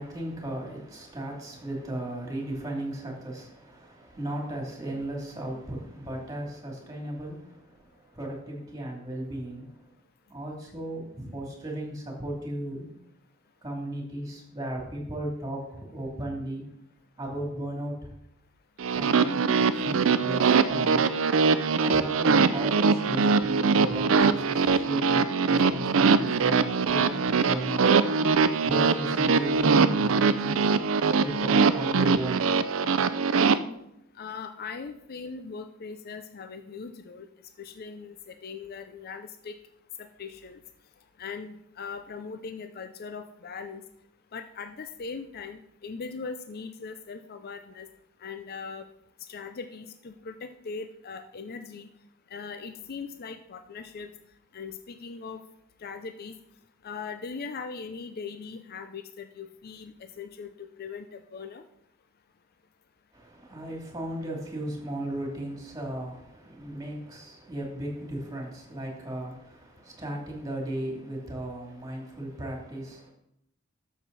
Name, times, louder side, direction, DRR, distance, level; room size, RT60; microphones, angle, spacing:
voice 1, 0.0-9.9 10.3-12.9 13.6-16.6 17.2-17.9 18.9-21.1 21.8-27.8 28.6-30.6 31.2-32.5 63.1-73.1, right 1 dB, 15° right, -1 dB, 2.9 m, -36 dB
sound 1, 18.8-33.6, right 5 dB, 65° right, 0.5 m, -22 dB
voice 2, 34.2-37.3 37.6-39.5 40.0-40.6 41.2-43.8 44.3-47.9 48.2-48.9 49.3-51.9 52.3-54.1 54.5-55.4 55.8-56.4 56.8-61.6, left 5 dB, 50° left, 8 dB, 0.5 m, -40 dB
12.0 x 7.2 x 4.1 m, 0.79 s
head